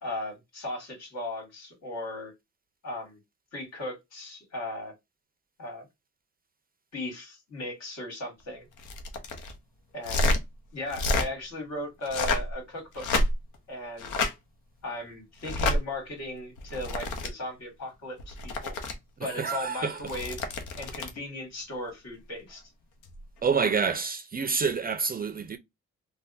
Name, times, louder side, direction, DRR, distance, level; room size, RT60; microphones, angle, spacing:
voice 1, 0.0-2.3 2.8-3.2 3.5-4.9 5.6-5.9 6.9-8.7 9.9-10.3 10.7-13.1 13.7-14.1 14.8-18.8 19.2-20.4 20.8-22.6, left 1 dB, 60° left, 2.0 m, -37 dB
sound 1, 8.8-9.5 10.0-10.4 10.9-11.3 12.0-12.5 12.9-13.5 14.0-14.3 15.4-15.8 16.6-17.3 18.2-18.9 20.0-21.2 23.0-23.2, left 2 dB, 80° left, 0.8 m, -28 dB
voice 2, 19.2-20.2 23.4-25.6, right 5 dB, 30° right, 0.4 m, -28 dB
3.3 x 2.2 x 2.5 m
cardioid pair, 90°, 30 cm